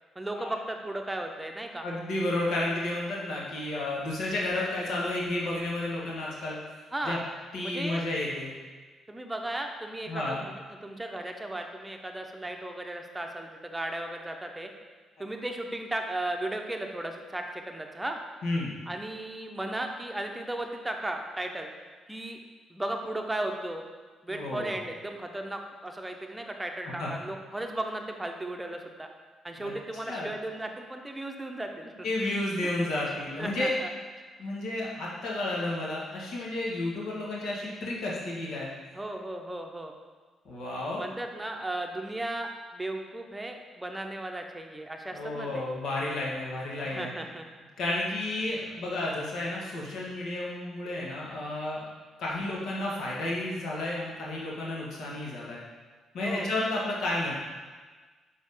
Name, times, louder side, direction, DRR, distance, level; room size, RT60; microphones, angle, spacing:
voice 1, 0.1-1.9 6.9-7.2 7.6-8.0 9.1-10.5 10.8-14.7 15.2-18.2 18.9-21.7 22.1-22.4 22.7-23.8 24.2-29.1 29.4-32.3 32.8-32.9 33.4-33.9 38.9-39.9 41.0-45.7 46.8-47.5 56.2-56.5, right 1 dB, 10° right, 3 dB, 0.8 m, -35 dB
voice 2, 1.8-6.6 7.0-7.2 7.5-8.5 10.1-10.4 15.2-15.3 18.4-18.7 24.3-24.7 27.0-27.1 29.6-29.7 30.1-30.3 32.0-33.7 34.4-38.7 40.4-41.0 45.1-47.1 47.8-51.8 52.2-55.6 56.1-57.3, left 2 dB, 75° left, -4 dB, 1.5 m, -31 dB
5.9 x 4.4 x 5.5 m, 1.4 s
cardioid pair, 90°, 0 cm